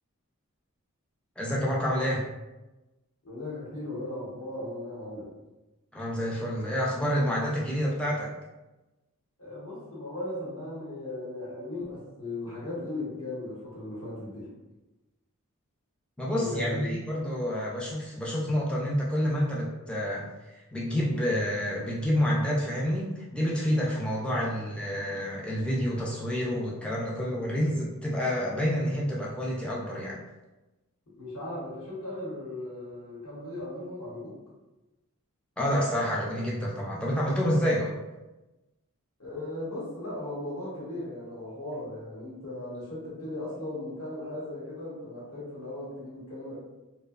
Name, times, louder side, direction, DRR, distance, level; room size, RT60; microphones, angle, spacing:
voice 1, 1.4-2.2 5.9-8.3 16.2-20.3 20.7-30.2 35.6-37.9, equal, 5° left, -4 dB, 0.3 m, -28 dB
voice 2, 3.2-5.3 9.4-14.5 16.4-16.9 31.2-34.4 39.2-46.6, left 1 dB, 75° left, -7 dB, 1.0 m, -37 dB
2.6 x 2.1 x 2.3 m, 1.1 s
head